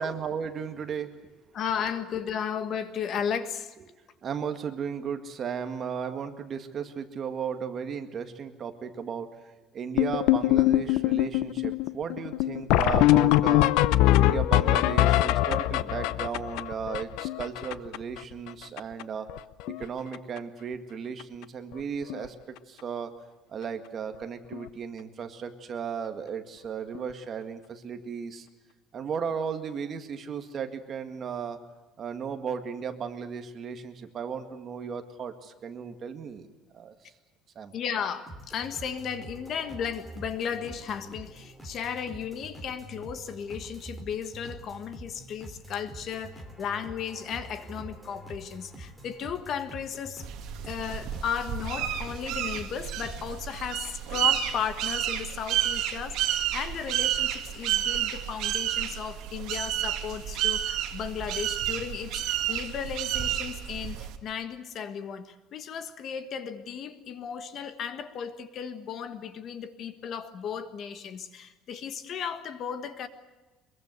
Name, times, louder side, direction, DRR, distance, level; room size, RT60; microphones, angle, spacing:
voice 1, 0.0-1.3 4.2-9.3 9.7-13.7 14.2-19.3 19.8-23.1 23.5-28.5 28.9-31.6 32.0-36.5 36.7-36.9 37.6-37.7, right 7 dB, 30° right, 7 dB, 1.9 m, -35 dB
voice 2, 1.5-3.7 37.7-50.3 50.6-73.1, left 7 dB, 40° left, 11 dB, 1.6 m, -35 dB
sound 1, 10.0-18.2 18.5-18.6 18.8-19.0 19.3-19.8 20.1-20.4 21.2-21.3 21.7-21.8 22.1-22.3 24.5-24.6 26.9-27.0, left 15 dB, 80° left, 0.8 m, -23 dB
sound 2, 38.3-53.5, right 1 dB, 5° left, 3.3 m, -45 dB
sound 3, 50.2-64.2, right 11 dB, 60° right, 2.5 m, -30 dB
23.5 x 22.5 x 8.1 m, 1.2 s
cardioid pair, 170°, 0 cm